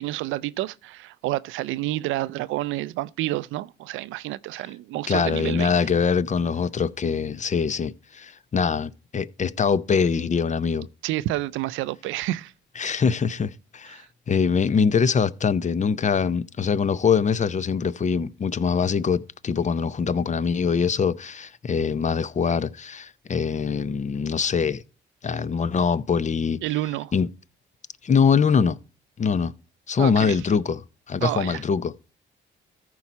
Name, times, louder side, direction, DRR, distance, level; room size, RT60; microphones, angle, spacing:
voice 1, 0.0-5.8 11.0-12.5 13.9-14.1 26.6-27.1 30.0-30.4 31.2-31.6, right 16 dB, 90° right, 0.4 m, -29 dB
voice 2, 5.1-10.9 12.8-14.0 14.3-24.8 25.2-26.6 27.1-27.3 28.0-28.8 29.2-29.5 29.9-30.8 31.1-31.9, left 6 dB, 40° left, 0.6 m, -23 dB
14.0 x 4.7 x 4.1 m
supercardioid pair, 65°, 20 cm